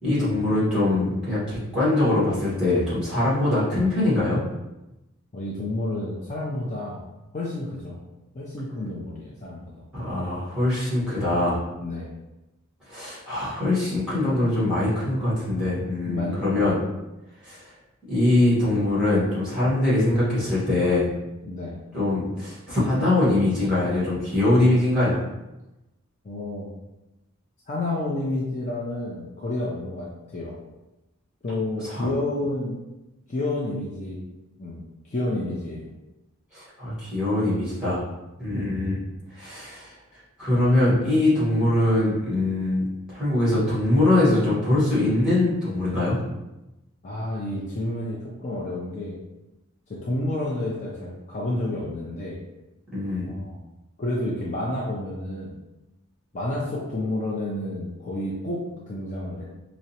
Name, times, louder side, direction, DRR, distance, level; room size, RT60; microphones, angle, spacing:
voice 1, 0.0-4.4 9.9-11.6 12.9-16.8 17.4-17.7 18.1-21.1 21.9-25.2 31.8-32.1 36.5-38.0 38.4-39.0 39.3-39.9 40.4-46.2 52.9-53.3, left 1 dB, 5° right, -9 dB, 1.4 m, -22 dB
voice 2, 5.3-7.0 7.3-8.0 8.3-9.7 11.8-12.1 16.0-16.7 21.4-21.8 26.2-26.7 27.7-30.6 31.4-32.8 33.3-34.2 34.6-35.9 47.0-49.2 49.9-52.4 53.2-53.6 54.0-55.6 56.3-59.4, left 1 dB, 35° left, -5 dB, 0.5 m, -30 dB
4.7 x 2.0 x 2.8 m, 0.98 s
head